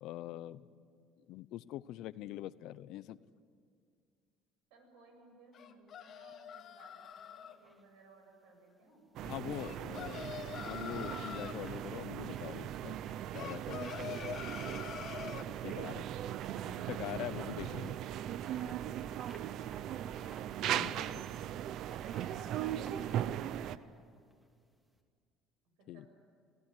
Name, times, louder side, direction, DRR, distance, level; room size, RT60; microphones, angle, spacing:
voice 1, 0.0-0.6 1.3-3.2 9.2-10.2 10.6-13.0 13.3-14.3 15.6-16.0 16.9-18.0 20.7-21.2 25.9-26.0, left 14 dB, 70° left, 17 dB, 0.7 m, -43 dB
voice 2, 4.7-9.0 18.3-23.9 25.8-26.1, right 3 dB, 85° right, 3 dB, 7.7 m, -61 dB
sound 1, 5.5-7.5 9.6-11.6 13.3-15.5, left 9 dB, 50° left, 1.6 m, -45 dB
sound 2, 7.1-7.8 9.1-24.6 24.9-25.0, right 1 dB, 10° right, 2.9 m, -61 dB
sound 3, 9.2-23.8, right 11 dB, 60° right, 0.7 m, -39 dB
26.5 x 17.0 x 10.0 m, 2.2 s
cardioid pair, 120°, 0 cm